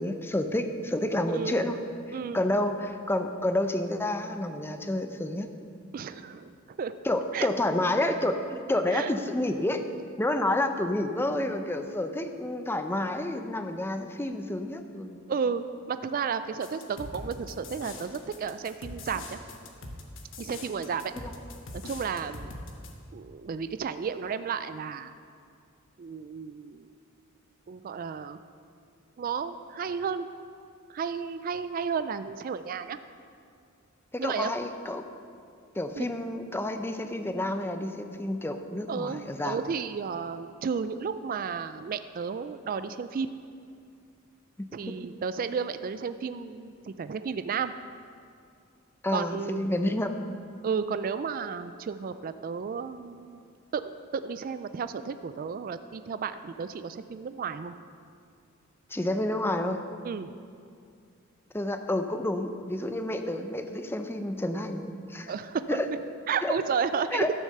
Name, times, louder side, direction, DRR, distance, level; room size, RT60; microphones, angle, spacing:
voice 1, 0.0-1.8 2.1-5.5 7.0-9.8 10.2-15.2 21.2-21.3 34.1-35.0 35.7-39.6 44.6-44.7 49.0-50.1 58.9-59.8 61.5-65.3 65.7-65.9 66.4-66.6 67.1-67.3, left 1 dB, 10° left, 7 dB, 0.6 m, -29 dB
voice 2, 1.3-1.7 2.1-2.4 5.9-6.5 6.8-7.0 7.3-7.5 8.9-9.1 15.3-19.4 20.4-21.1 21.7-22.5 23.1-25.1 26.0-26.9 27.7-28.4 29.2-30.3 30.9-33.0 34.2-34.5 36.0-36.1 38.9-43.3 44.7-47.7 49.1-49.7 50.6-53.4 53.7-57.7 60.0-60.3 65.3-66.0 66.3-67.3, right 6 dB, 45° right, 11 dB, 0.3 m, -33 dB
sound 1, 16.6-22.9, left 2 dB, 65° left, 1.2 m, -42 dB
12.5 x 6.5 x 6.7 m, 2.3 s
head